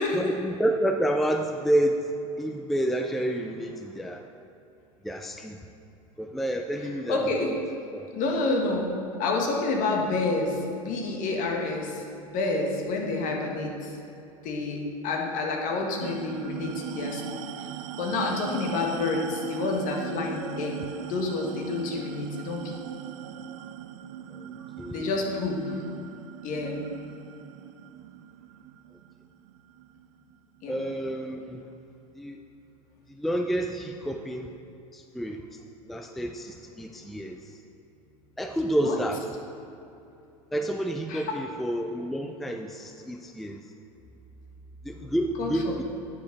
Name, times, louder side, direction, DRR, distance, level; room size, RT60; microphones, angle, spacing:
voice 1, 0.1-2.1 2.4-4.2 5.0-5.6 6.2-7.5 7.9-8.1 24.3-24.5 24.8-25.1 30.7-31.7 32.2-32.4 33.1-34.5 34.9-35.5 35.8-37.4 38.4-39.2 40.5-43.6 44.8-45.8, right 1 dB, ahead, 5 dB, 0.4 m, -29 dB
voice 2, 7.1-7.5 8.1-14.0 14.4-17.7 18.0-22.8 24.9-25.8 26.4-26.9 30.6-30.8 38.8-39.0 41.1-41.4 45.4-45.8, left 3 dB, 50° left, 1 dB, 1.6 m, -29 dB
sound 1, 16.0-30.8, right 10 dB, 70° right, 0.4 m, -40 dB
10.0 x 5.2 x 5.3 m, 2.8 s
hypercardioid pair, 90°, 17 cm